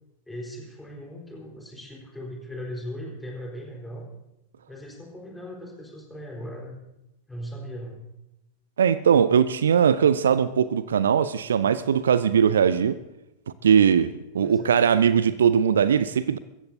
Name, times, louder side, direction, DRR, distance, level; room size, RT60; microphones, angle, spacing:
voice 1, 0.3-4.1 4.7-6.8 7.3-8.0 14.4-14.8, equal, 5° left, -1 dB, 4.1 m, -38 dB
voice 2, 8.8-13.0 13.6-16.4, right 7 dB, 65° right, 16 dB, 0.5 m, -20 dB
24.0 x 14.5 x 2.7 m, 0.92 s
figure-of-eight pair, 90°, 0 cm